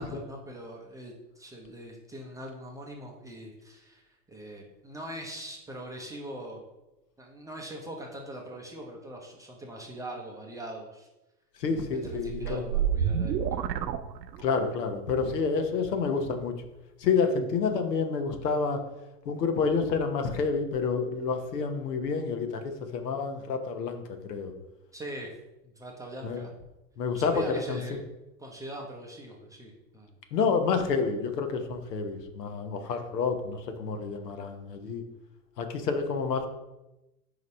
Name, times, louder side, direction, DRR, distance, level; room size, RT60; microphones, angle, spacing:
voice 1, 0.0-4.0 4.3-6.6 7.2-11.1 11.9-13.6 24.9-25.3 25.6-26.5 27.1-28.0 28.4-30.1, right 1 dB, 5° right, -1 dB, 0.5 m, -41 dB
voice 2, 11.6-12.6 14.4-16.5 17.0-18.8 19.3-24.5 26.2-26.4 27.0-27.8 30.3-35.0 35.6-36.5, left 5 dB, 75° left, 6 dB, 1.1 m, -29 dB
sound 1, 12.0-14.8, right 8 dB, 85° right, 0.6 m, -29 dB
4.8 x 4.0 x 5.3 m, 0.97 s
hypercardioid pair, 115°, 48 cm